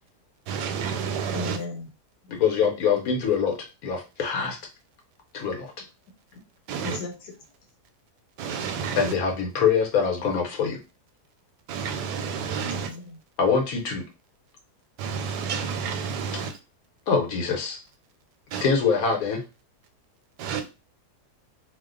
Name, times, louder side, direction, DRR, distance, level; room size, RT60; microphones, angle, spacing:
voice 1, 0.5-1.6 6.7-7.0 8.4-9.1 11.7-12.9 15.0-16.6 18.5-18.6 20.4-20.6, right 6 dB, 80° right, 1.1 m, -30 dB
voice 2, 1.3-1.9 6.8-7.3 12.7-13.2, left 3 dB, 80° left, 1.3 m, -35 dB
voice 3, 2.3-3.5 3.8-4.6 5.3-5.7 9.0-10.8 13.4-14.0 17.1-17.8 18.6-19.4, left 6 dB, 65° left, 1.2 m, -24 dB
2.9 x 2.1 x 3.7 m
omnidirectional pair, 1.7 m